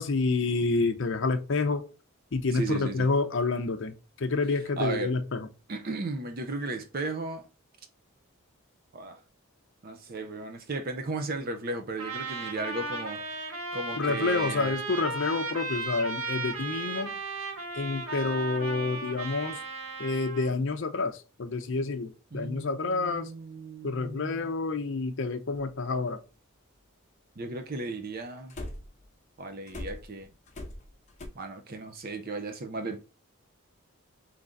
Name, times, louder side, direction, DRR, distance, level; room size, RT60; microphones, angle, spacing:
voice 1, 0.0-1.8 2.3-5.5 14.0-17.2 17.8-19.6 20.0-23.3 23.8-26.2, left 3 dB, 60° left, 0.6 m, -28 dB
voice 2, 2.5-3.1 4.8-5.1 5.7-7.5 8.9-9.2 9.8-13.2 13.7-14.8 22.3-24.5 27.4-28.5 29.4-30.3 31.3-33.0, right 3 dB, 45° right, 0.6 m, -35 dB
Trumpet, 12.0-20.5, right 3 dB, 80° right, 1.5 m, -35 dB
sound 1, 25.5-25.6 28.5-29.0 29.7-31.3, left 1 dB, 35° left, 0.9 m, -40 dB
3.7 x 3.3 x 3.8 m
head